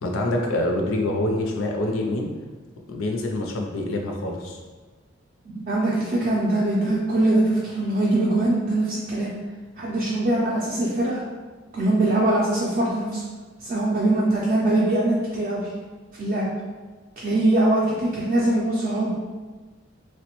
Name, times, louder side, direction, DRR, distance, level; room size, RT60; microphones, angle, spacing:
voice 1, 0.0-2.3 2.9-4.6, left 1 dB, 75° left, 1 dB, 0.5 m, -26 dB
voice 2, 5.7-9.3 9.8-11.2 11.7-13.2 13.6-15.6 16.2-16.5 17.2-19.1, right 1 dB, 40° right, -6 dB, 0.4 m, -22 dB
3.1 x 2.1 x 2.9 m, 1.3 s
head